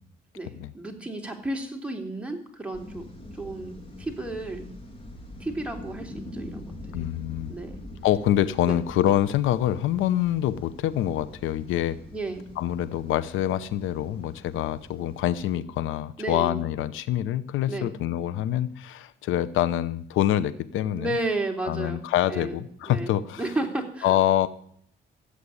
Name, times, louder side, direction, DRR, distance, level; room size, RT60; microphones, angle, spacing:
voice 1, 0.4-3.1 3.3-4.7 5.4-7.1 7.5-7.7 8.7-8.8 12.1-12.5 16.2-16.6 17.7-17.9 21.0-22.0 22.3-22.6 22.9-23.1 23.4-24.2, right 2 dB, 5° right, 2 dB, 3.4 m, -32 dB
sound 1, 2.7-15.6, left 1 dB, 25° left, 3.3 m, -44 dB
voice 2, 6.9-7.5 8.0-12.0 12.6-21.1 21.6-23.4 24.0-24.5, left 12 dB, 90° left, 15 dB, 0.8 m, -25 dB
14.5 x 8.2 x 9.7 m, 0.64 s
cardioid pair, 90°, 20 cm